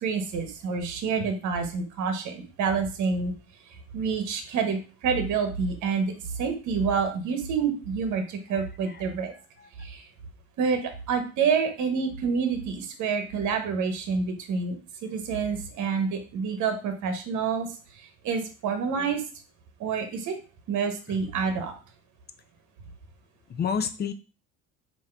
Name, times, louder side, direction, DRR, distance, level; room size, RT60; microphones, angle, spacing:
voice 1, 0.0-3.3 3.9-9.3 9.8-10.1 10.6-14.7 15.0-17.7 17.9-19.2 19.8-20.4 20.7-21.7, right 5 dB, 60° right, 6 dB, 1.1 m, -28 dB
voice 2, 9.3-9.7 21.1-21.2 23.5-24.1, left 7 dB, 30° left, 10 dB, 0.5 m, -31 dB
3.7 x 2.9 x 4.4 m, 0.34 s
cardioid pair, 110°, 33 cm